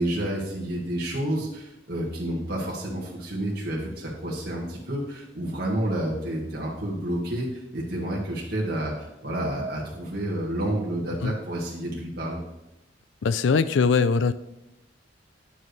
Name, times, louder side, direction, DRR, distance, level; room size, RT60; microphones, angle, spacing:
voice 1, 0.0-12.4, right 1 dB, 60° right, -4 dB, 1.7 m, -29 dB
voice 2, 13.2-14.3, left 5 dB, 90° left, 14 dB, 0.4 m, -21 dB
10.0 x 7.5 x 3.2 m, 0.90 s
head